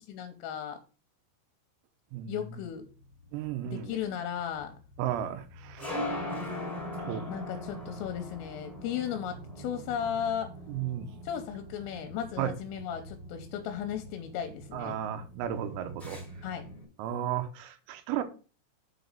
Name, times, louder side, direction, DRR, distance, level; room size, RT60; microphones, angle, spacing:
voice 1, 0.1-0.8 2.3-2.9 3.6-4.7 7.3-10.5 11.2-15.0 16.4-16.6, left 9 dB, 80° left, 3.4 m, -35 dB
voice 2, 2.1-2.4 3.3-4.0 5.0-5.9 7.0-7.3 10.7-11.1 12.4-12.5 14.7-16.2 17.0-18.2, right 10 dB, 85° right, 3.7 m, -34 dB
sound 1, 2.9-16.8, left 1 dB, ahead, 2.2 m, -41 dB
7.7 x 4.1 x 6.5 m
omnidirectional pair, 6.0 m